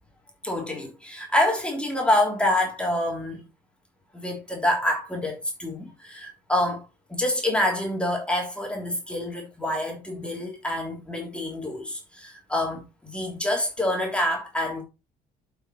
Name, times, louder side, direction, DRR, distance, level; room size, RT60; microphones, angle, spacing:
voice 1, 0.4-3.4 4.1-6.8 7.1-14.8, left 1 dB, 5° left, 3.2 m, -27 dB
8.1 x 5.8 x 4.4 m
cardioid pair, 110°, 17 cm